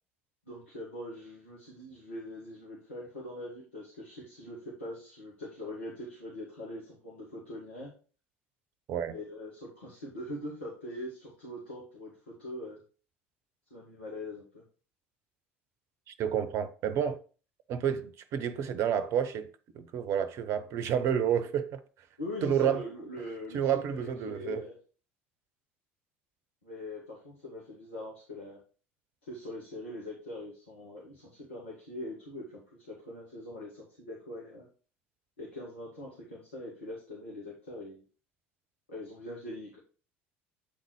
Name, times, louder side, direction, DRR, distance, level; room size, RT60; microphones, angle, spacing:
voice 1, 0.5-7.9 9.1-12.8 13.7-14.6 22.2-24.7 26.6-28.6 29.3-34.7 35.4-38.0 38.9-39.8, left 1 dB, 75° left, 2.1 m, -42 dB
voice 2, 16.1-17.2 17.7-19.5 19.7-21.8 22.4-22.8 23.5-24.6, right 8 dB, 45° right, 0.8 m, -30 dB
8.8 x 4.0 x 4.7 m
figure-of-eight pair, 65°, 7 cm